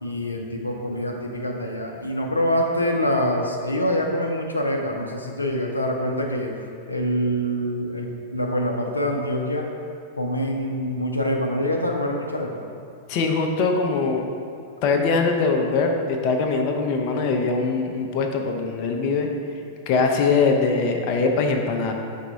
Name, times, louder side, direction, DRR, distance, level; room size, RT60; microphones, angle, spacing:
voice 1, 0.0-6.5 6.9-9.7 10.2-12.6, equal, 90° left, 0 dB, 0.5 m, -25 dB
voice 2, 13.1-14.2 14.8-19.3 19.9-21.9, left 4 dB, 45° left, 3 dB, 0.6 m, -22 dB
4.9 x 3.5 x 5.6 m, 2.3 s
figure-of-eight pair, 95°, 0 cm